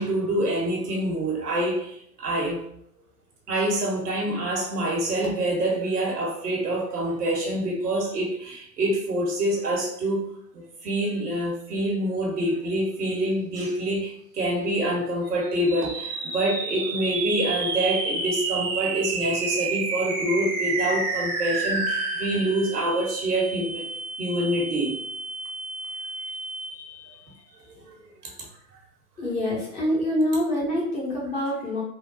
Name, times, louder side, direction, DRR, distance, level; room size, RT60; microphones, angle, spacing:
voice 1, 0.0-2.6 3.5-23.9 24.2-25.0 27.7-28.0 28.2-28.3, right 1 dB, 70° right, -1 dB, 1.2 m, -26 dB
sound 1, 15.5-27.0, right 3 dB, 30° right, 0.7 m, -30 dB
voice 2, 29.2-31.8, left 1 dB, 15° left, -5 dB, 0.7 m, -25 dB
3.5 x 2.3 x 2.5 m, 0.67 s
figure-of-eight pair, 105°, 48 cm